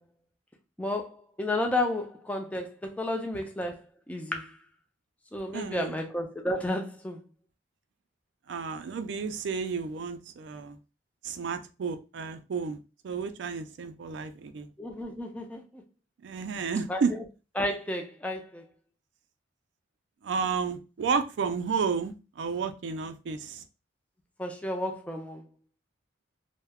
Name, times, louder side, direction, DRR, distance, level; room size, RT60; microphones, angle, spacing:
voice 1, 0.8-3.8 4.1-4.5 5.3-7.2 14.8-15.6 16.9-17.0 17.6-18.6 24.4-25.4, left 1 dB, 5° left, 0.4 m, -32 dB
voice 2, 5.5-6.0 8.5-10.8 11.2-14.7 16.2-17.1 20.2-23.6, right 5 dB, 65° right, 0.3 m, -32 dB
2.2 x 2.0 x 3.4 m
head